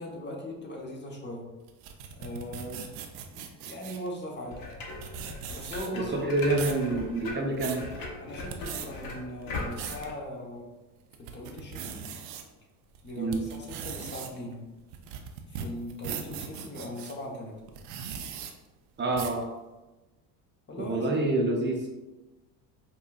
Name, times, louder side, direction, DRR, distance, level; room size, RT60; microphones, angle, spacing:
voice 1, 0.0-1.5 2.2-2.9 3.3-4.7 5.5-6.9 8.2-10.7 11.2-12.0 13.0-14.6 15.5-17.6 20.7-21.5, left 1 dB, 25° left, -1 dB, 1.0 m, -39 dB
sound 1, 1.7-4.1 4.7-4.8 5.0-6.1 6.4-6.8 7.3-7.8 8.4-8.9 9.4-10.1 10.6-10.7 11.1-12.4 12.9-17.1 17.7-18.5 19.1-19.4, right 8 dB, 70° right, 0.6 m, -39 dB
sound 2, 4.5-10.1, left 2 dB, 45° left, 1.0 m, -39 dB
voice 2, 5.9-7.8 13.2-13.4 19.0-19.4 20.9-21.8, right 2 dB, 25° right, 1 dB, 0.6 m, -27 dB
5.3 x 2.3 x 2.3 m, 1.1 s
hypercardioid pair, 80°, 47 cm